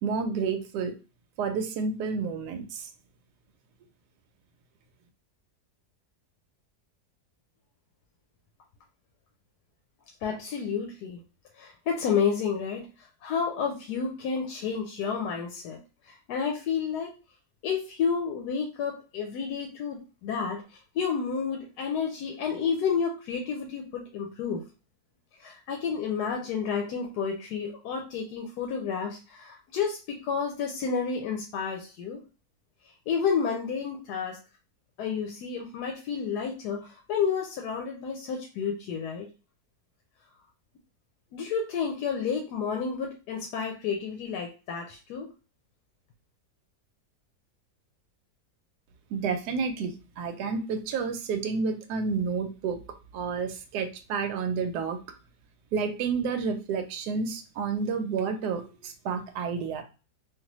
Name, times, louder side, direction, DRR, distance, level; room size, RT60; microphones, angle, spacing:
voice 1, 0.0-0.9 1.4-2.9 49.1-52.8 53.1-55.0 55.7-59.8, right 5 dB, 85° right, 6 dB, 1.2 m, -30 dB
voice 2, 10.2-11.2 11.6-12.9 13.2-15.8 16.1-17.1 17.6-20.6 20.9-24.6 25.4-32.2 33.1-34.4 35.0-39.3 41.3-45.3, left 6 dB, 90° left, 2 dB, 1.2 m, -30 dB
3.3 x 2.5 x 2.9 m, 0.32 s
omnidirectional pair, 1.7 m